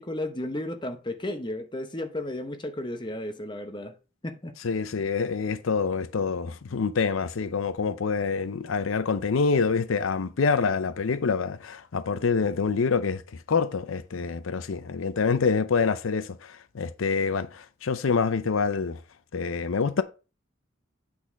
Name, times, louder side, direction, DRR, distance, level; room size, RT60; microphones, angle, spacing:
voice 1, 0.0-3.9 4.2-4.5, left 1 dB, 25° left, 0.8 m, -33 dB
voice 2, 4.6-19.0 19.3-20.0, left 5 dB, 80° left, 0.6 m, -26 dB
8.6 x 4.0 x 5.1 m
head